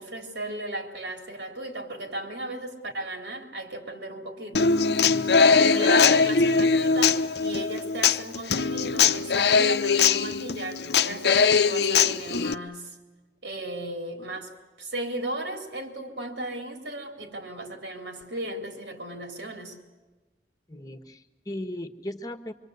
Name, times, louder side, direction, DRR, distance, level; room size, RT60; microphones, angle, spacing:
voice 1, 0.0-4.8 5.7-13.0 13.4-14.5 14.8-19.8, right 1 dB, 85° right, 3 dB, 3.7 m, -36 dB
Human voice / Acoustic guitar, 4.5-12.5, left 5 dB, 65° left, 0.7 m, -21 dB
voice 2, 20.7-22.5, left 1 dB, 20° left, 9 dB, 1.3 m, -37 dB
25.0 x 24.5 x 8.1 m, 1.2 s
head